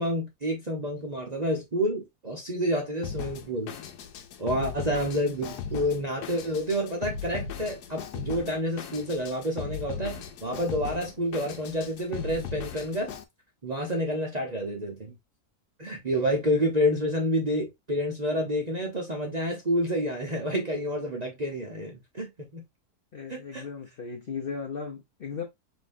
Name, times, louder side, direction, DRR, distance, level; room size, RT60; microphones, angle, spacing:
voice 1, 0.0-3.7 4.4-13.1 13.6-15.1 15.8-22.6 23.3-23.7, equal, 30° right, 0.8 m, -29 dB
Drum kit, 3.0-13.2, left 7 dB, 80° left, 1.2 m, -38 dB
voice 2, 23.1-25.4, left 5 dB, 45° left, 0.8 m, -36 dB
5.4 x 3.1 x 2.6 m
omnidirectional pair, 1.7 m